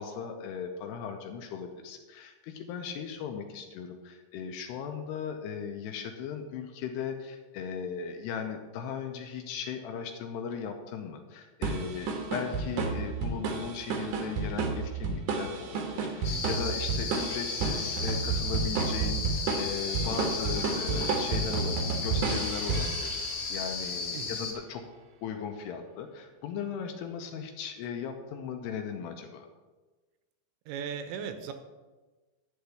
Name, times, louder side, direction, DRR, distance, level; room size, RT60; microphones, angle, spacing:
voice 1, 0.0-24.8 25.2-29.5, left 6 dB, 80° left, 4 dB, 2.6 m, -37 dB
sound 1, 11.6-23.6, right 4 dB, 65° right, 2.1 m, -31 dB
sound 2, 16.2-24.5, left 4 dB, 55° left, 3.0 m, -35 dB
voice 2, 16.3-16.7 24.1-24.5 30.7-31.5, right 7 dB, 80° right, 8 dB, 3.1 m, -38 dB
12.0 x 4.6 x 8.3 m, 1.2 s
omnidirectional pair, 5.4 m